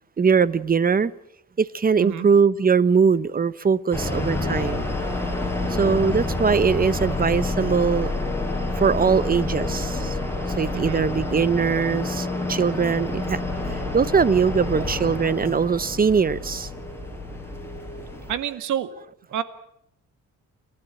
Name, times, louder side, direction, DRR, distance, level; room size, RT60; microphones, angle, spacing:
voice 1, 0.2-1.1 1.6-4.8 5.7-8.1 8.8-10.2 10.6-13.4 13.7-16.7, right 5 dB, 30° right, 18 dB, 1.0 m, -21 dB
sound 1, 3.9-18.3, left 2 dB, 10° left, 6.3 m, -28 dB
voice 2, 10.7-11.0 18.3-19.0 19.3-19.4, right 10 dB, 75° right, 12 dB, 2.0 m, -28 dB
29.5 x 12.5 x 9.2 m, 0.75 s
cardioid pair, 90°, 30 cm